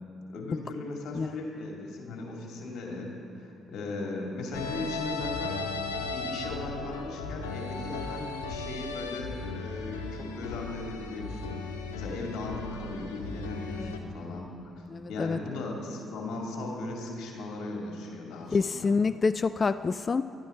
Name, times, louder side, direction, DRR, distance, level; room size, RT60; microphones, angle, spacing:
voice 1, 0.3-3.1 3.3-5.7 6.0-14.7 15.1-18.9, left 2 dB, 60° left, 0 dB, 2.5 m, -37 dB
sound 1, 4.5-14.0, left 3 dB, 80° left, 0.9 m, -36 dB
voice 2, 14.9-15.4 18.5-20.2, left 4 dB, 35° left, 14 dB, 0.4 m, -27 dB
19.0 x 13.0 x 3.8 m, 2.7 s
figure-of-eight pair, 45°, 0 cm